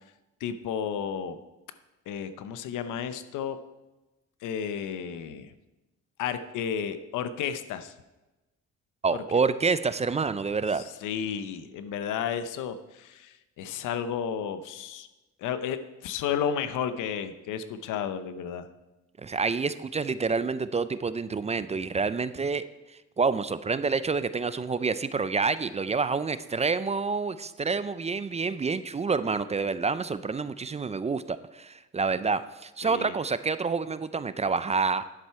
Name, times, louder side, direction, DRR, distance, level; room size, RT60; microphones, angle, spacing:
voice 1, 0.4-1.4 2.1-3.6 4.4-5.5 6.2-7.9 9.1-9.2 11.0-15.1 15.4-18.7 32.8-33.1, left 8 dB, 90° left, 11 dB, 0.8 m, -32 dB
voice 2, 9.0-10.8 19.2-22.6 23.2-35.1, right 4 dB, 20° right, 14 dB, 0.4 m, -28 dB
10.5 x 7.4 x 4.7 m, 1.1 s
cardioid pair, 90°, 30 cm